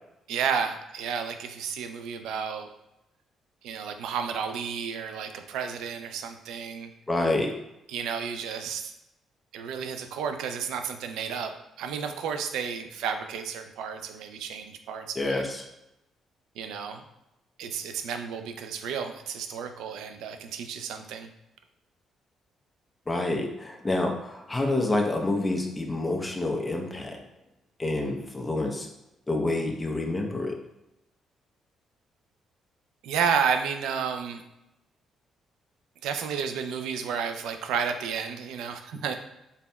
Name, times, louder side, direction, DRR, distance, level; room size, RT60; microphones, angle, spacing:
voice 1, 0.3-2.7 3.6-6.9 7.9-8.9 9.5-11.5 11.8-15.4 16.6-17.0 17.6-21.3 33.0-34.4 36.0-39.1, right 6 dB, 90° right, 7 dB, 0.4 m, -31 dB
voice 2, 7.1-7.5 15.2-15.6 23.1-27.2 27.8-28.9 29.3-30.6, left 2 dB, 15° left, 1 dB, 0.7 m, -28 dB
4.0 x 4.0 x 2.2 m, 0.88 s
cardioid pair, 90°, 0 cm